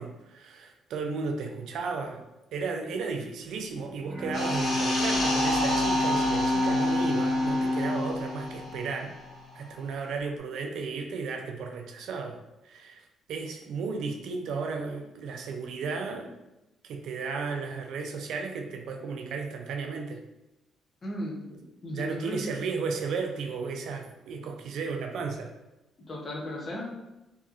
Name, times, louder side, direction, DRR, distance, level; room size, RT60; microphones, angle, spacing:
voice 1, 0.0-2.2 2.5-9.2 9.5-12.4 12.6-13.0 13.3-16.3 16.8-20.2 21.9-25.5, right 4 dB, 80° right, 3 dB, 0.3 m, -34 dB
Bowed string instrument, 3.9-9.6, left 2 dB, 20° right, 0.8 m, -29 dB
sound 1, 4.3-9.4 9.7-9.9, equal, 70° left, 1.1 m, -31 dB
voice 2, 21.0-21.4 21.8-22.5 26.1-26.8, left 1 dB, 40° left, -1 dB, 0.6 m, -35 dB
2.7 x 2.2 x 2.4 m, 0.97 s
cardioid pair, 90°, 0 cm